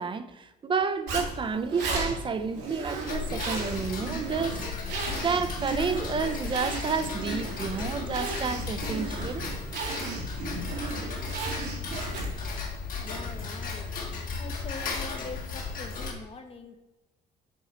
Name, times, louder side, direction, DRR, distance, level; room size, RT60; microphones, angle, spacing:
voice 1, 0.0-4.6 5.1-9.4, right 5 dB, 30° right, 0.7 m, -30 dB
Zipper (clothing), 1.1-12.5, right 3 dB, 80° right, 2.1 m, -35 dB
Tick-tock, 3.1-16.1, left 4 dB, 55° left, 1.9 m, -35 dB
voice 2, 13.0-13.9 14.4-16.9, left 4 dB, 35° left, 1.1 m, -43 dB
7.4 x 4.7 x 4.3 m
cardioid pair, 110°, 17 cm